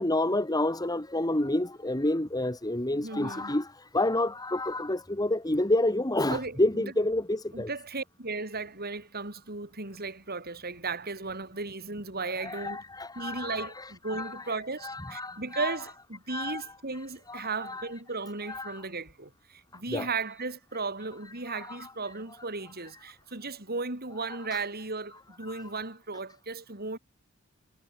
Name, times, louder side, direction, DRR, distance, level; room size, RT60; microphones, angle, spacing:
voice 1, 0.0-7.7 12.3-14.4 14.8-15.7 16.3-16.6 17.3-17.9 18.5-18.8 19.9-20.1 21.5-21.9 25.5-25.6, left 1 dB, 20° left, 2.2 m, -29 dB
voice 2, 2.9-3.6 6.3-7.0 7.5-12.8 13.1-27.0, right 3 dB, 50° right, 5.9 m, -36 dB
head